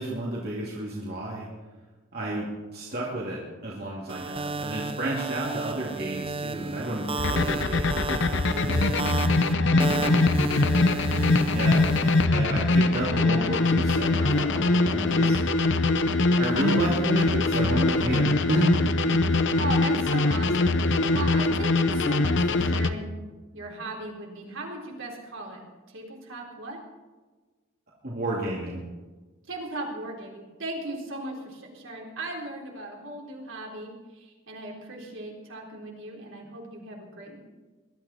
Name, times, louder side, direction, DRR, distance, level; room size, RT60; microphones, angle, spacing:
voice 1, 0.0-1.5 2.1-9.2 11.5-15.4 16.4-18.6 28.0-28.8, right 1 dB, 50° right, -5 dB, 2.6 m, -31 dB
sound 1, 4.1-12.3, right 3 dB, 25° right, 0.5 m, -33 dB
sound 2, 7.2-22.9, left 2 dB, 60° left, 0.8 m, -23 dB
voice 2, 9.6-10.5 19.5-20.8 21.1-23.2 23.5-25.6 25.9-26.8 29.5-37.4, right 2 dB, 65° right, -1 dB, 3.6 m, -37 dB
21.0 x 12.0 x 4.3 m, 1.3 s
head